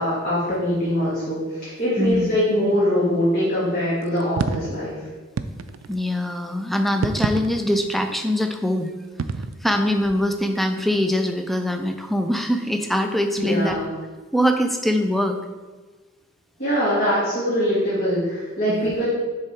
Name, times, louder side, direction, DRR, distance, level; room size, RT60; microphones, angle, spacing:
voice 1, 0.0-5.0 13.4-13.9 16.6-19.1, equal, 45° left, -9 dB, 1.7 m, -22 dB
voice 2, 2.0-2.4 5.9-8.9 9.6-13.8 14.3-15.4 18.7-19.0, equal, ahead, 5 dB, 0.4 m, -23 dB
sound 1, 4.1-4.8 5.4-6.0 6.9-7.9 9.2-9.5, right 5 dB, 80° right, 0.4 m, -27 dB
6.6 x 3.5 x 4.5 m, 1.3 s
head